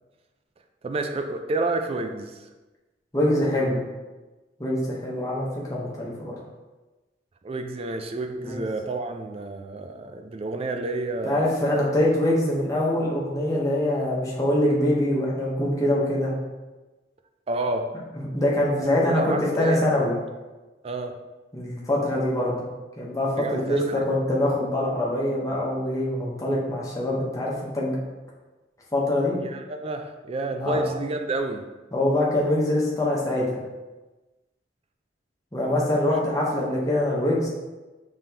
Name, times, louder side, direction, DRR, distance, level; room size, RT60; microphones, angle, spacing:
voice 1, 0.8-2.5 7.4-11.5 17.5-17.9 18.8-19.8 20.8-21.2 23.4-24.1 29.4-31.7, right 2 dB, 30° right, 6 dB, 0.3 m, -29 dB
voice 2, 3.1-3.8 4.6-6.3 8.4-8.5 11.2-16.3 18.2-20.1 21.5-22.6 23.0-28.0 28.9-29.4 30.6-30.8 31.9-33.6 35.5-37.5, left 1 dB, 20° left, -4 dB, 0.9 m, -24 dB
5.5 x 3.3 x 2.9 m, 1.2 s
head